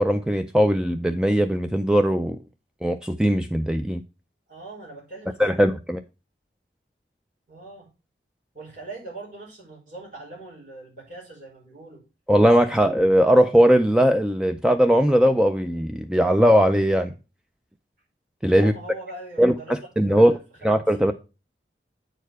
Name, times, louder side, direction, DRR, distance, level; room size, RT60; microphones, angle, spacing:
voice 1, 0.0-2.4 2.8-4.0 5.4-6.0 12.3-17.1 18.4-18.7 19.4-19.5 20.0-20.4 20.6-21.1, equal, 5° right, 0.3 m, -19 dB
voice 2, 4.5-5.7 7.5-7.9 8.5-12.0 12.7-12.8 18.5-21.1, right 2 dB, 50° right, 4.6 m, -41 dB
9.0 x 4.7 x 4.6 m
head